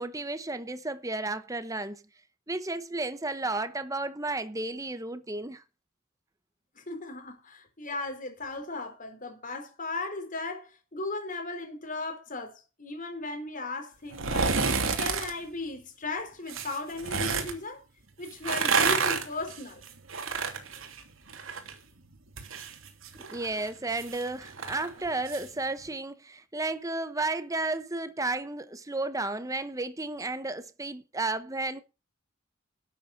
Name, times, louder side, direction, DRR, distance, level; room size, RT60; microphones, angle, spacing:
voice 1, 0.0-2.0 2.5-5.6 23.3-31.8, right 2 dB, 15° right, 1.1 m, -33 dB
voice 2, 6.7-14.6 15.0-17.8 18.2-19.8, left 3 dB, 40° left, 4.1 m, -36 dB
sound 1, 14.1-15.3 16.5-17.5 18.3-21.7 22.0-25.5 25.8-25.9, right 5 dB, 75° right, 2.8 m, -29 dB
12.5 x 8.3 x 6.5 m
head